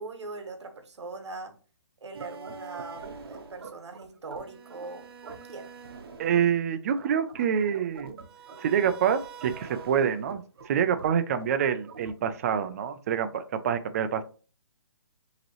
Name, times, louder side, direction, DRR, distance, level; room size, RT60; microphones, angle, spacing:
voice 1, 0.0-1.6 2.0-5.7, right 3 dB, 85° right, 1.1 m, -41 dB
sound 1, 2.1-12.5, right 4 dB, 60° right, 0.9 m, -45 dB
voice 2, 6.2-8.1 8.6-14.2, right 8 dB, 35° right, 0.5 m, -26 dB
5.2 x 3.0 x 3.0 m
hypercardioid pair, 155°, 14 cm